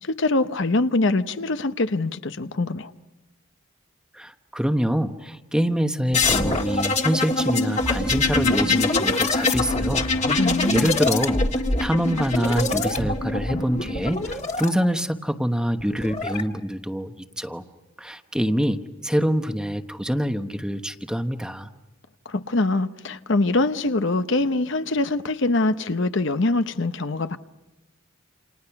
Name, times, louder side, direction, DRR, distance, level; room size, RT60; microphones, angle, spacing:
voice 1, 0.0-2.9 10.4-11.0 22.2-27.4, left 2 dB, 60° left, 0.8 m, -23 dB
voice 2, 4.2-10.0 10.3-11.4 11.8-17.6 18.0-21.7, equal, 5° right, 1.1 m, -25 dB
sound 1, 6.1-14.7 15.8-16.4, left 3 dB, 30° left, 1.8 m, -23 dB
29.0 x 28.5 x 5.9 m
head